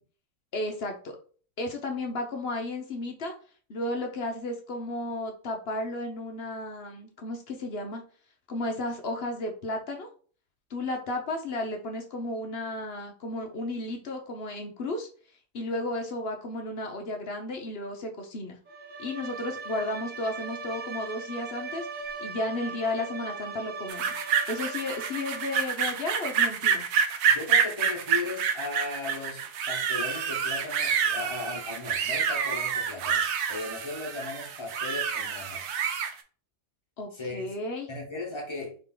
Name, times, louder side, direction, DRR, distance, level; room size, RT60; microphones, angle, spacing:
voice 1, 0.5-1.2 1.6-3.3 3.7-8.0 8.5-10.1 10.7-15.1 15.5-18.6 19.0-21.9 22.2-26.8 37.0-37.9, left 2 dB, 50° left, 3 dB, 0.8 m, -33 dB
Bowed string instrument, 18.7-25.8, right 4 dB, 55° right, 0.5 m, -39 dB
sound 1, 23.9-36.1, right 7 dB, 70° right, 1.1 m, -28 dB
voice 2, 27.3-35.6 37.1-37.5 37.9-38.8, left 3 dB, 20° left, -1 dB, 1.2 m, -37 dB
4.0 x 3.4 x 3.8 m, 0.41 s
omnidirectional pair, 1.7 m